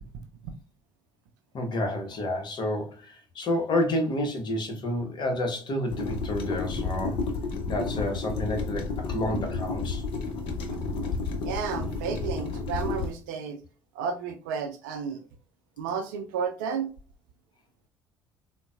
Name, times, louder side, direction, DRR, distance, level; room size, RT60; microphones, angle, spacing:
voice 1, 0.1-0.5 11.4-13.6 13.9-15.2 15.8-16.9, right 6 dB, 75° right, 6 dB, 0.5 m, -32 dB
voice 2, 1.5-7.2 7.6-10.0, left 1 dB, 45° left, 4 dB, 1.0 m, -29 dB
sound 1, 5.9-13.1, left 4 dB, 65° left, 0.6 m, -31 dB
3.8 x 2.2 x 2.3 m, 0.36 s
hypercardioid pair, 55°, 10 cm